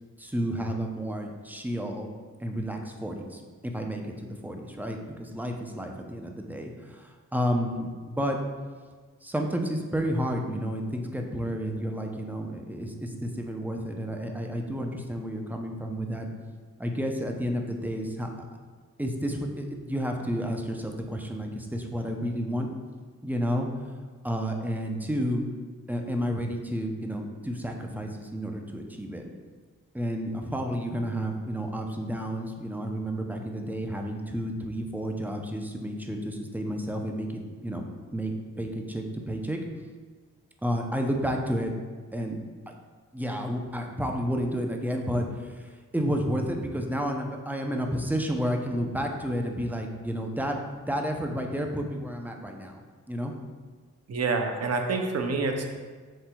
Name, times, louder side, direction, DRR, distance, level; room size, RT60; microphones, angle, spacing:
voice 1, 0.2-2.1 2.4-8.4 9.2-16.3 16.8-18.3 19.0-22.7 23.2-23.7 24.2-25.4 25.9-29.3 29.9-39.6 40.6-41.7 42.1-42.4 42.7-42.8 43.1-50.6 50.9-52.8 53.1-53.3, equal, 5° right, 2 dB, 0.5 m, -31 dB
voice 2, 54.1-55.7, right 3 dB, 50° right, 4 dB, 0.7 m, -27 dB
7.5 x 2.8 x 2.3 m, 1.5 s
cardioid pair, 55°, 32 cm